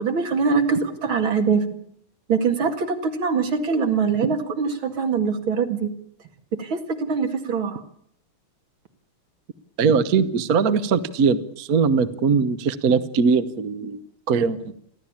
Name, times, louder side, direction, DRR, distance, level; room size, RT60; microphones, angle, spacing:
voice 1, 0.0-1.6 2.3-5.9 6.5-7.8, right 5 dB, 75° right, 6 dB, 2.9 m, -23 dB
voice 2, 9.8-14.0 14.3-14.7, right 5 dB, 50° right, 12 dB, 1.3 m, -21 dB
30.0 x 12.0 x 8.7 m, 0.67 s
omnidirectional pair, 2.2 m